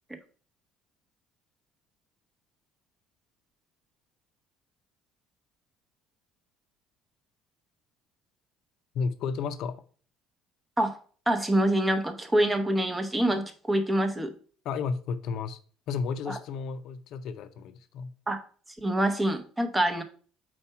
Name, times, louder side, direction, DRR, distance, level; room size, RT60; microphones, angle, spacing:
voice 1, 8.9-9.8 14.6-15.6 15.9-18.1, left 5 dB, 55° left, 0.6 m, -32 dB
voice 2, 11.3-14.3 16.3-16.4 18.3-18.4 18.8-20.0, right 1 dB, 10° right, 0.8 m, -26 dB
4.5 x 4.3 x 5.6 m
cardioid pair, 145°, 0 cm